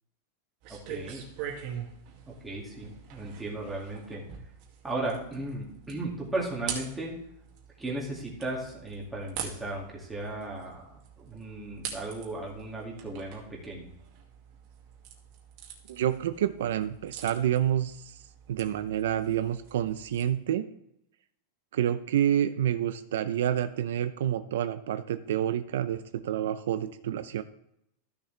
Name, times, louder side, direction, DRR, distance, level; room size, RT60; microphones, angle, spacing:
sound 1, 0.6-20.2, right 8 dB, 40° right, 1.9 m, -44 dB
voice 1, 0.7-1.2 2.3-4.2 4.8-7.1 7.8-13.9, right 2 dB, 5° right, -4 dB, 2.3 m, -36 dB
voice 2, 15.9-18.1 18.5-20.7 21.7-27.4, right 10 dB, 80° right, 11 dB, 0.6 m, -28 dB
14.0 x 6.7 x 3.4 m, 0.76 s
supercardioid pair, 165°, 0 cm